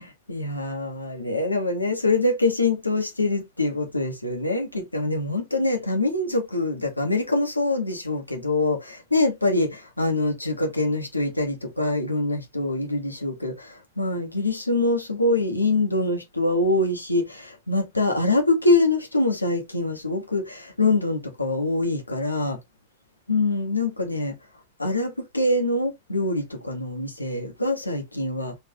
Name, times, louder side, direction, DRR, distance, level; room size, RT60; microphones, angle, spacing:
voice 1, 0.3-22.6 23.3-24.3 24.8-28.5, left 2 dB, 85° left, 1.1 m, -24 dB
3.6 x 3.1 x 2.9 m
figure-of-eight pair, 90°, 0 cm